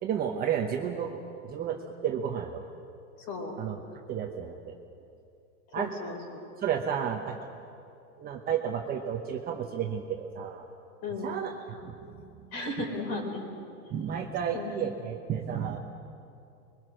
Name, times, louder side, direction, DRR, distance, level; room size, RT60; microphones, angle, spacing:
voice 1, 0.0-1.2 1.5-2.7 3.6-3.8 4.1-4.8 5.7-5.9 6.6-7.4 8.2-10.7 11.2-12.3 13.9-15.8, right 8 dB, 20° right, 2 dB, 1.1 m, -32 dB
voice 2, 5.7-6.4 11.0-11.3 12.5-13.5 14.5-14.7, left 2 dB, 35° left, 3 dB, 4.6 m, -35 dB
25.5 x 22.5 x 6.4 m, 2.6 s
supercardioid pair, 155°, 44 cm